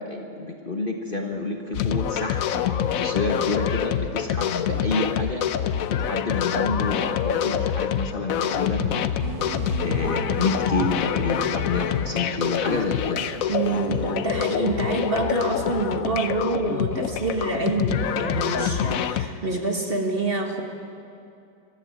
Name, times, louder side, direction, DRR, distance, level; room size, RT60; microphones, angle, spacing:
voice 1, 0.0-9.5 9.8-13.3, left 3 dB, 35° left, 2 dB, 1.3 m, -29 dB
sound 1, 1.7-19.3, left 9 dB, 60° left, 1.0 m, -26 dB
sound 2, 9.2-16.0, right 2 dB, 85° right, 2.3 m, -37 dB
voice 2, 13.5-20.6, right 3 dB, 35° right, 2 dB, 1.7 m, -27 dB
22.0 x 13.5 x 9.0 m, 2.5 s
omnidirectional pair, 1.9 m